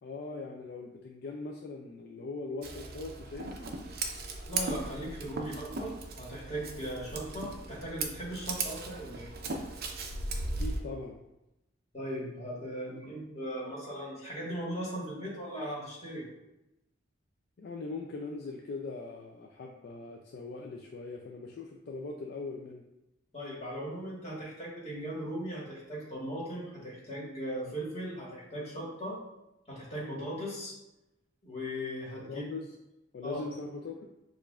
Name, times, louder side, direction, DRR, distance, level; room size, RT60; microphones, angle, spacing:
voice 1, 0.0-3.8 10.6-11.2 17.6-22.8 32.3-32.6 33.1-34.0, left 3 dB, 55° left, 1 dB, 0.4 m, -41 dB
Scissors, 2.6-10.8, right 3 dB, 55° right, 0.5 m, -37 dB
voice 2, 4.5-9.3 11.9-16.3 23.3-29.2 29.7-30.7 31.4-32.5 33.2-33.4, equal, 35° left, -5 dB, 1.5 m, -38 dB
6.7 x 2.5 x 2.3 m, 0.94 s
head